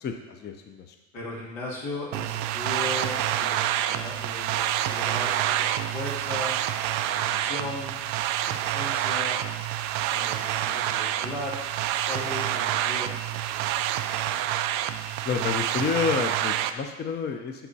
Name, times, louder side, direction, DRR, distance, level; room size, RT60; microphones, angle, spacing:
voice 1, 0.0-0.9 15.2-17.7, left 6 dB, 25° left, 5 dB, 0.6 m, -29 dB
voice 2, 1.1-6.6 7.1-8.0 8.4-9.4 10.1-11.6 12.1-13.6, left 2 dB, 90° left, -5 dB, 2.4 m, -37 dB
sound 1, 2.1-16.7, right 12 dB, 50° right, 0.5 m, -27 dB
11.5 x 4.4 x 2.8 m, 1.1 s
hypercardioid pair, 85°, 37 cm